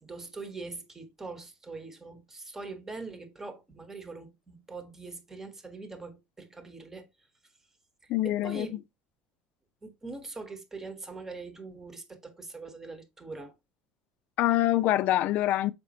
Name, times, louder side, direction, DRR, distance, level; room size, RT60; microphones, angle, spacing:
voice 1, 0.0-7.1 8.0-8.8 9.8-13.5, right 3 dB, 10° right, 1.1 m, -42 dB
voice 2, 8.1-8.7 14.4-15.7, left 14 dB, 50° left, 0.6 m, -25 dB
6.7 x 5.1 x 2.8 m
cardioid pair, 155°, 4 cm